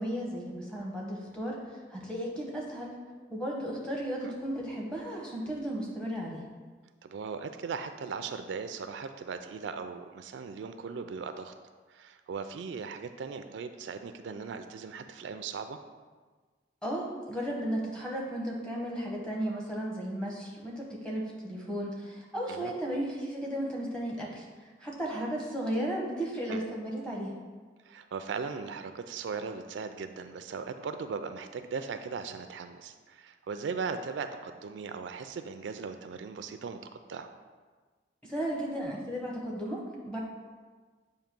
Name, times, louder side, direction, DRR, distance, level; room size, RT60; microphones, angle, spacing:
voice 1, 0.0-1.6 1.9-2.9 3.3-6.5 16.8-24.4 24.8-27.3 38.2-40.2, right 1 dB, 5° left, -4 dB, 1.0 m, -34 dB
voice 2, 7.0-11.5 11.9-15.8 22.5-22.7 26.5-26.6 27.9-36.8 37.1-37.3, right 5 dB, 75° right, 8 dB, 0.3 m, -38 dB
7.5 x 2.7 x 5.2 m, 1.4 s
head